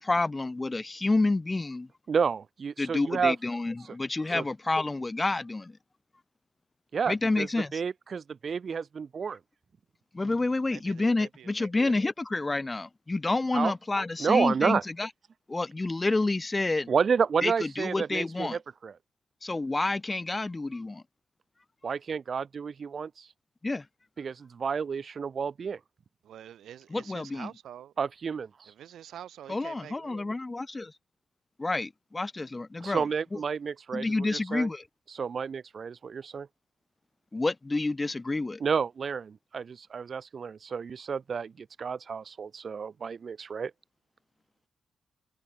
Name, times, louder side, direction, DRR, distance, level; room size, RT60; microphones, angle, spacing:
voice 1, 0.0-1.9 2.8-5.8 7.1-7.8 10.1-15.1 15.5-16.9 17.4-18.6 19.4-21.0 23.6-23.9 26.9-27.5 29.5-30.9 31.6-33.1 33.3-33.4 33.9-34.8 37.3-38.6, left 2 dB, 30° left, 0.3 m, -29 dB
voice 2, 2.1-3.3 4.3-4.4 6.9-7.5 7.7-9.4 13.5-13.7 14.2-14.8 16.9-18.9 21.8-23.3 24.2-25.8 28.0-28.7 32.8-34.7 35.1-36.5 38.6-43.7, right 6 dB, 55° right, 0.6 m, -30 dB
voice 3, 10.7-11.9 26.2-27.9 28.7-30.3, right 10 dB, 80° right, 1.0 m, -47 dB
supercardioid pair, 45°, 0 cm